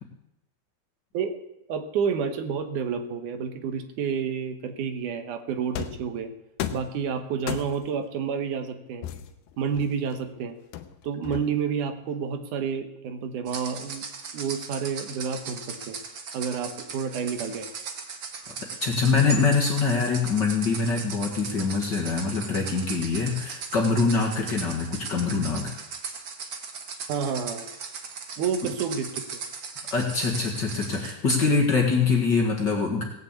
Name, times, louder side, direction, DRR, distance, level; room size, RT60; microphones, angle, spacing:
voice 1, 1.7-6.3 6.7-9.1 9.6-10.6 11.0-14.1 14.3-16.0 16.3-17.7 27.1-27.7 28.4-29.3, right 6 dB, 75° right, 7 dB, 2.6 m, -29 dB
sound 1, 5.8-6.1 6.6-7.0 7.5-8.0 9.0-10.2 10.7-11.7, left 11 dB, 85° left, 2.6 m, -35 dB
sound 2, 13.5-31.1, right 5 dB, 50° right, 1.6 m, -38 dB
voice 2, 18.8-25.7 29.9-33.0, left 4 dB, 40° left, 0 dB, 1.9 m, -24 dB
18.0 x 6.7 x 8.3 m, 0.88 s
omnidirectional pair, 3.7 m